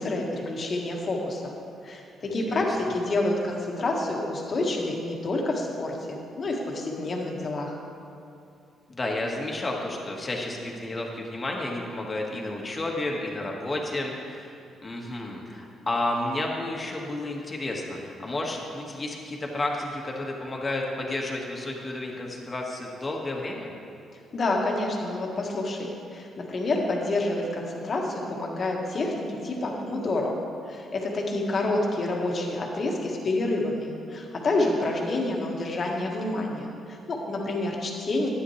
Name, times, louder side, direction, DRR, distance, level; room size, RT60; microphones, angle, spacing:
voice 1, 0.0-1.5 1.8-7.8 24.3-30.3 30.7-38.3, left 2 dB, 45° left, -1 dB, 1.6 m, -28 dB
voice 2, 2.2-2.7 8.9-23.7, left 2 dB, 25° left, -1 dB, 1.6 m, -31 dB
12.5 x 9.6 x 3.2 m, 2.6 s
cardioid pair, 90°, 0 cm